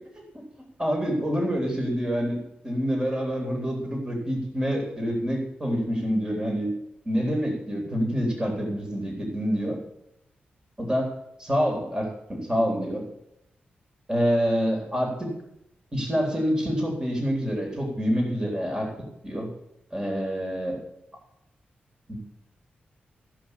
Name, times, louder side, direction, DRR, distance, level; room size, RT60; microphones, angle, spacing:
voice 1, 0.8-2.4 2.6-6.7 7.1-9.8 10.8-11.1 11.4-13.0 14.1-15.3 15.9-18.9 19.2-19.5 19.9-20.8 22.1-22.2, equal, 20° right, 0 dB, 3.8 m, -26 dB
15.5 x 5.8 x 8.3 m, 0.82 s
cardioid pair, 95°, 4 cm